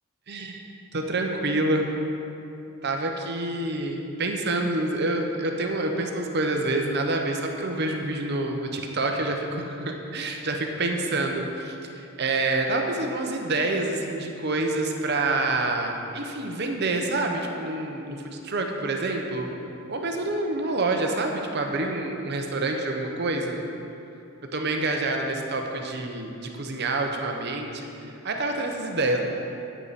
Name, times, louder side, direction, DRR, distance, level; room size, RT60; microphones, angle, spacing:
voice 1, 0.3-0.6 0.9-1.9 2.8-19.5 19.9-23.6 24.5-29.2, right 2 dB, 50° right, 3 dB, 0.8 m, -27 dB
9.6 x 9.0 x 4.1 m, 2.8 s
head